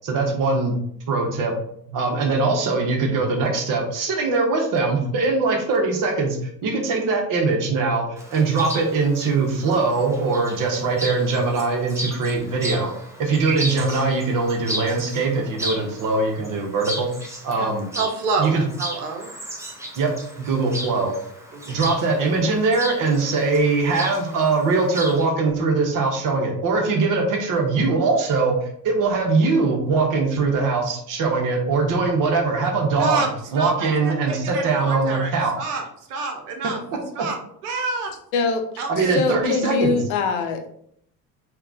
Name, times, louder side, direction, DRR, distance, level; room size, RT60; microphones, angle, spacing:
voice 1, 0.0-0.8 1.1-1.5 1.9-12.9 13.2-17.1 17.4-17.8 18.4-18.6 20.0-20.1 20.4-21.1 21.7-33.2 33.5-35.5 38.9-40.0, right 3 dB, 40° right, 2 dB, 1.0 m, -21 dB
Chirp tweet, 8.2-25.3, right 1 dB, 5° right, 0.7 m, -35 dB
voice 2, 18.0-19.3 21.5-21.8 33.0-33.3 33.6-35.3 35.6-36.8 37.1-38.1 38.8-39.2, right 4 dB, 65° right, 3 dB, 0.8 m, -28 dB
voice 3, 39.1-40.7, left 4 dB, 60° left, 5 dB, 0.7 m, -22 dB
3.5 x 2.4 x 3.7 m, 0.68 s
figure-of-eight pair, 60°, 50 cm